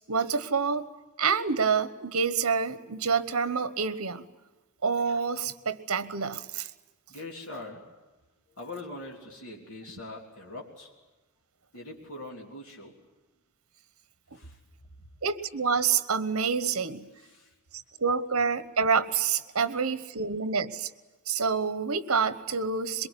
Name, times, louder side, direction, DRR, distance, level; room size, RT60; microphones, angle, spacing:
voice 1, 0.1-0.9 1.2-4.3 4.8-6.7 15.2-17.1 17.7-20.9 21.3-23.1, right 5 dB, 70° right, 13 dB, 1.1 m, -27 dB
voice 2, 7.1-7.9 8.5-10.9 11.7-13.0 14.3-15.1 17.1-17.5 19.5-19.7, left 2 dB, 75° left, -1 dB, 3.4 m, -43 dB
22.5 x 22.5 x 9.9 m, 1.1 s
head